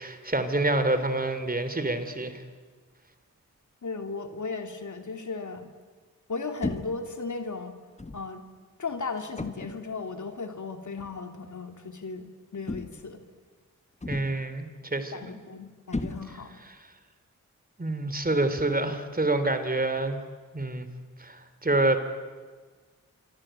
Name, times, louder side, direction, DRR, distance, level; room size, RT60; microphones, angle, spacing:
voice 1, 0.0-2.4 14.1-15.3 17.8-20.2 20.5-20.9 21.2-22.0, right 2 dB, 25° right, 10 dB, 3.2 m, -27 dB
voice 2, 3.8-5.7 6.3-7.8 8.1-8.4 8.8-12.3 12.5-13.2 15.1-16.6, left 4 dB, 60° left, 5 dB, 2.9 m, -36 dB
sound 1, 6.6-7.1 8.0-8.3 9.4-9.9 11.0-11.2 12.7-13.2 14.0-14.5 15.9-16.6, left 2 dB, 20° left, 1.3 m, -35 dB
27.0 x 24.0 x 9.0 m, 1.5 s
cardioid pair, 70°, 34 cm